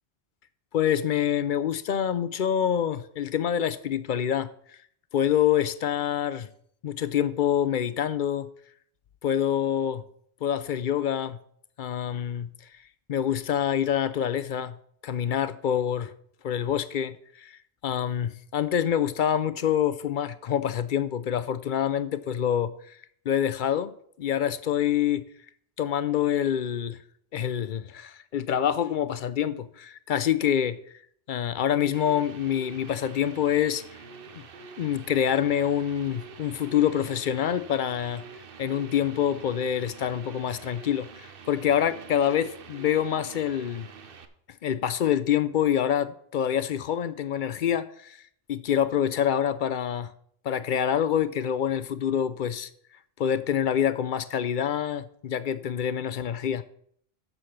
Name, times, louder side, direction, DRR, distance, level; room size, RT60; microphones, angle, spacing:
voice 1, 0.7-4.5 5.1-6.5 6.8-8.5 9.2-10.0 10.4-11.4 11.8-12.5 13.1-14.8 15.0-16.1 16.4-23.0 23.3-25.2 25.8-27.0 27.3-30.8 31.3-33.8 34.8-38.2 38.6-43.9 44.6-48.2 48.5-50.1 50.4-52.7 53.2-56.6, left 9 dB, 60° left, 0.7 m, -26 dB
sound 1, 31.9-44.2, right 5 dB, 60° right, 1.0 m, -46 dB
8.0 x 7.2 x 5.8 m
omnidirectional pair, 1.1 m